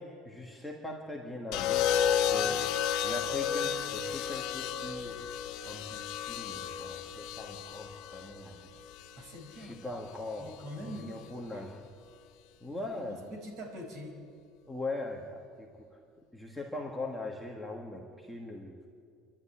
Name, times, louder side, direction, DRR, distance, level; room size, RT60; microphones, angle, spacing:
voice 1, 0.0-1.9 2.3-2.7 3.0-5.2 5.6-8.7 9.5-11.9 12.6-13.2 14.7-15.9 16.3-18.8, left 2 dB, ahead, 0 dB, 1.5 m, -41 dB
sound 1, 1.5-9.7 10.9-11.3, left 8 dB, 55° left, 1.2 m, -32 dB
voice 2, 2.3-2.7 9.2-9.8 10.4-11.1 11.5-11.6 13.0-14.2, equal, 40° right, 2 dB, 5.4 m, -44 dB
27.5 x 12.0 x 10.0 m, 2.2 s
cardioid pair, 165°, 0 cm